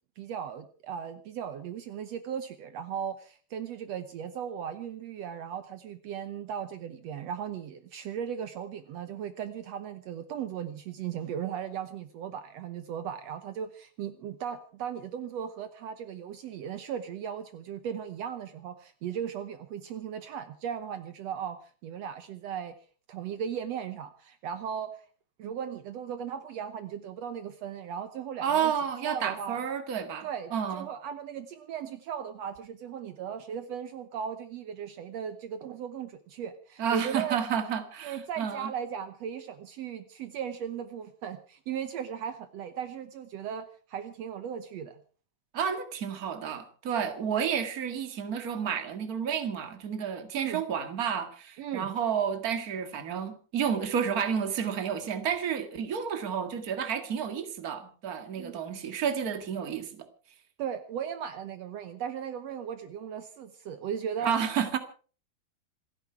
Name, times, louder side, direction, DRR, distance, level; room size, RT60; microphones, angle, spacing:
voice 1, 0.2-22.7 23.1-25.0 25.4-28.7 29.0-29.6 30.2-37.4 38.0-45.0 50.3-50.6 51.6-51.9 58.4-58.6 60.6-64.3, right 8 dB, 90° right, 10 dB, 1.4 m, -37 dB
voice 2, 28.4-30.9 36.8-38.7 45.5-60.1 64.2-64.8, right 7 dB, 40° right, 8 dB, 1.4 m, -31 dB
27.5 x 10.0 x 4.6 m, 0.41 s
omnidirectional pair, 4.4 m